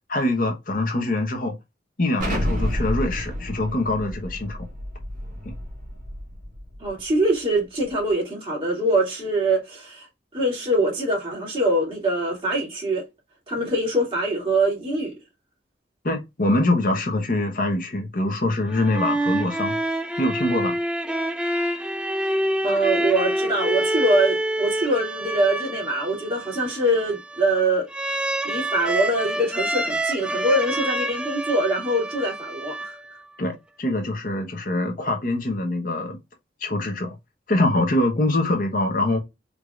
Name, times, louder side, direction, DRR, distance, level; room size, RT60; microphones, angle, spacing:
voice 1, 0.1-1.5 2.0-4.6 5.4-5.5 16.0-19.7 20.2-20.8 33.4-36.2 36.6-37.1 37.5-39.2, left 2 dB, 50° left, 1.0 m, -24 dB
Explosion, 2.2-6.9, equal, 45° right, 1.6 m, -30 dB
voice 2, 6.8-10.1 10.3-13.1 13.5-15.1 22.6-33.0, right 1 dB, 30° right, 2.4 m, -23 dB
sound 1, 18.7-33.3, right 1 dB, 5° right, 0.3 m, -27 dB
4.7 x 2.8 x 2.4 m
head